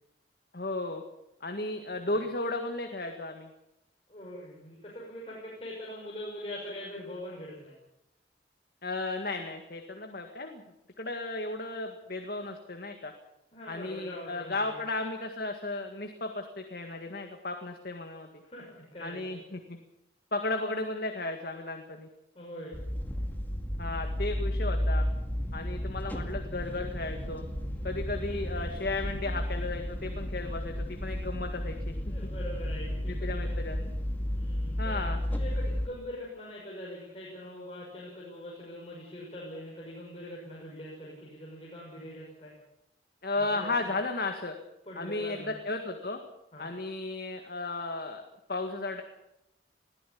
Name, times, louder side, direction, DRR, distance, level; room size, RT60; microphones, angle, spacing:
voice 1, 0.5-1.0 1.4-3.5 8.8-10.6 11.0-13.1 13.7-18.3 19.0-19.8 20.3-22.1 23.8-25.1 25.5-27.4 27.8-32.0 33.1-33.8 34.8-35.2 43.2-44.6 44.9-46.2 46.6-48.2 48.5-49.0, left 2 dB, 55° left, 4 dB, 1.9 m, -34 dB
voice 2, 4.1-7.7 13.5-14.8 18.4-19.2 22.3-22.7 28.2-28.4 29.2-29.4 32.1-33.6 34.3-35.1 35.4-42.5 43.4-43.9 44.8-45.6 46.5-46.7, left 1 dB, 30° left, -4 dB, 6.1 m, -43 dB
sound 1, 22.7-35.9, equal, 10° left, 2.1 m, -33 dB
21.5 x 14.5 x 8.5 m, 0.85 s
head